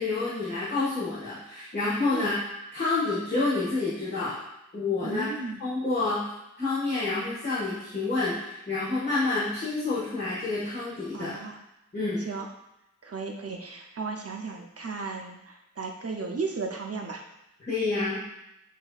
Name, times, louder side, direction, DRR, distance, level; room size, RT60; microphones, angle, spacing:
voice 1, 0.0-2.4 2.7-4.3 4.7-5.3 5.6-6.3 6.6-11.3 11.9-12.3 17.6-18.2, left 3 dB, 35° left, -10 dB, 1.4 m, -28 dB
voice 2, 5.0-5.6 11.1-11.6 12.2-12.5 13.0-17.2, right 4 dB, 55° right, 1 dB, 0.6 m, -35 dB
7.8 x 2.7 x 2.4 m, 0.88 s
wide cardioid pair, 60°, 29 cm